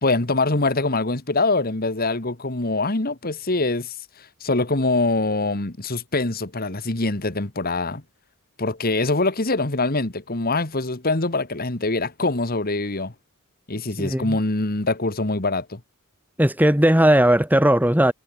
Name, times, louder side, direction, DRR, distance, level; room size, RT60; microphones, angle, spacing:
voice 1, 0.0-8.0 8.6-13.1 13.7-15.8, left 2 dB, 40° left, 1.7 m, -24 dB
voice 2, 14.0-14.4 16.4-18.1, right 1 dB, 10° right, 2.1 m, -17 dB
head